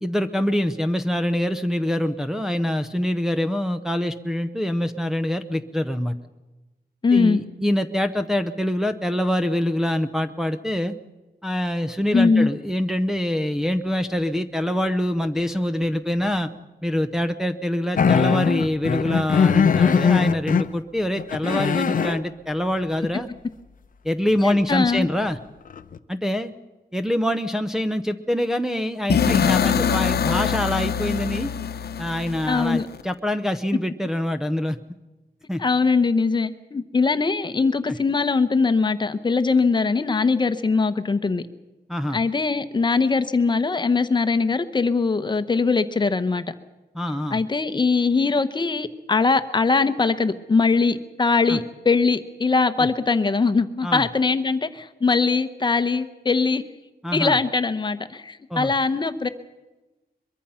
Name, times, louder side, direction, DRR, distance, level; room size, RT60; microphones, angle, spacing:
voice 1, 0.0-6.1 7.1-10.9 11.4-16.5 16.8-23.3 24.0-25.4 26.1-26.5 26.9-31.5 32.0-34.8 35.5-35.6 41.9-42.2 46.9-47.4 51.5-51.6 52.8-52.9 53.8-54.0 57.0-57.4 58.5-58.7, left 1 dB, 5° right, 5 dB, 0.7 m, -25 dB
voice 2, 7.0-7.4 12.1-12.5 24.4-25.1 32.5-32.9 35.6-41.4 42.1-46.4 47.3-56.6 57.1-59.3, left 4 dB, 30° left, 10 dB, 0.9 m, -21 dB
sound 1, 18.0-20.7 21.2-22.2 25.0-25.1 25.7-26.0, left 6 dB, 55° left, 0.8 m, -20 dB
sound 2, 29.1-33.0, left 8 dB, 80° left, 1.0 m, -23 dB
23.0 x 22.5 x 5.7 m, 1.1 s
wide cardioid pair, 175°, 16 cm